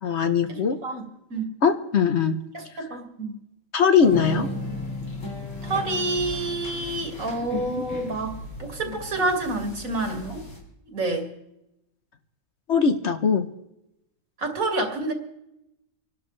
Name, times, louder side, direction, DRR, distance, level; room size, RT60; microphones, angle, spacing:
voice 1, 0.0-0.8 1.6-2.4 3.7-4.5 12.7-13.5, left 6 dB, 55° left, 9 dB, 1.2 m, -20 dB
voice 2, 0.8-1.5 2.5-3.3 5.6-10.3 10.9-11.3 14.4-15.1, right 2 dB, 70° right, 4 dB, 2.5 m, -28 dB
sound 1, 4.0-10.6, left 1 dB, 90° left, 4.1 m, -35 dB
27.0 x 12.0 x 3.2 m, 0.86 s
omnidirectional pair, 1.5 m